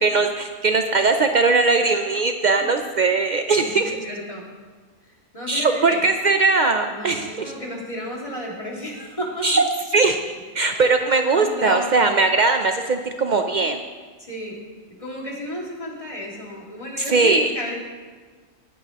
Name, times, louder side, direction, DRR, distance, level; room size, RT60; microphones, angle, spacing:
voice 1, 0.0-4.0 5.5-7.3 9.4-9.6 9.9-10.2 10.5-13.8 17.1-17.5, right 3 dB, 90° right, 6 dB, 0.4 m, -19 dB
voice 2, 3.6-4.4 5.1-6.0 6.9-9.6 10.7-10.8 11.3-12.1 14.2-14.6 15.0-17.7, left 1 dB, 25° left, -3 dB, 2.1 m, -33 dB
18.0 x 9.0 x 2.9 m, 1.4 s
omnidirectional pair, 1.5 m